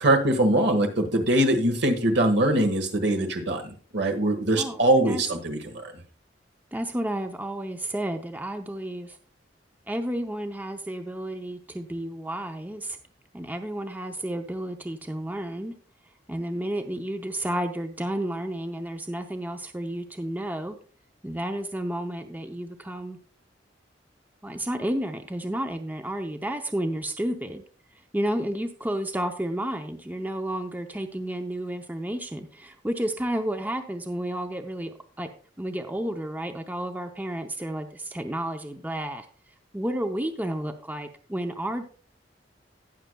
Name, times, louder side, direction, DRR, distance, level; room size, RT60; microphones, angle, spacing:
voice 1, 0.0-5.8, right 1 dB, 65° right, 5 dB, 1.5 m, -22 dB
voice 2, 4.6-5.2 6.7-9.2 9.9-13.0 13.3-15.7 16.3-20.8 21.2-23.2 24.4-27.6 28.1-35.3 35.6-39.3 39.7-41.8, right 1 dB, 10° right, 5 dB, 0.6 m, -31 dB
18.0 x 6.5 x 2.3 m, 0.40 s
head